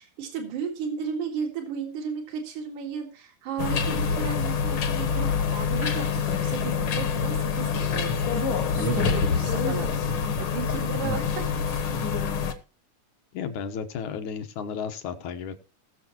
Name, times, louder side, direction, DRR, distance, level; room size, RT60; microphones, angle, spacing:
voice 1, 0.0-9.9 10.4-11.5 11.7-11.8, right 7 dB, 75° right, 3 dB, 3.4 m, -34 dB
sound 1, 3.6-12.5, left 6 dB, 55° left, 1.7 m, -26 dB
voice 2, 13.3-15.6, left 7 dB, 75° left, 8 dB, 2.5 m, -33 dB
20.0 x 6.8 x 3.0 m, 0.33 s
omnidirectional pair, 3.6 m